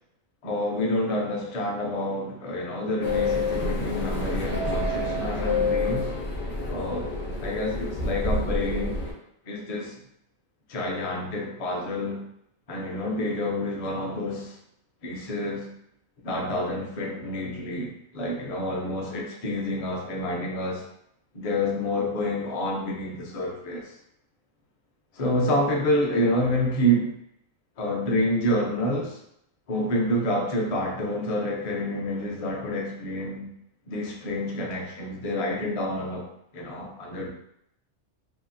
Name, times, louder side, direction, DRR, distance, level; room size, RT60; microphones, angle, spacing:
voice 1, 0.4-6.1 6.7-7.1 7.4-9.0 9.5-9.9 10.7-12.3 12.7-14.6 15.0-15.7 16.2-20.9 21.3-23.9 25.1-27.1 27.8-29.2 29.7-33.5 33.9-37.3, left 1 dB, 45° left, -1 dB, 0.5 m, -28 dB
sound 1, 3.0-9.1, left 2 dB, 65° left, 0.9 m, -28 dB
2.8 x 2.3 x 2.6 m, 0.73 s
omnidirectional pair, 1.2 m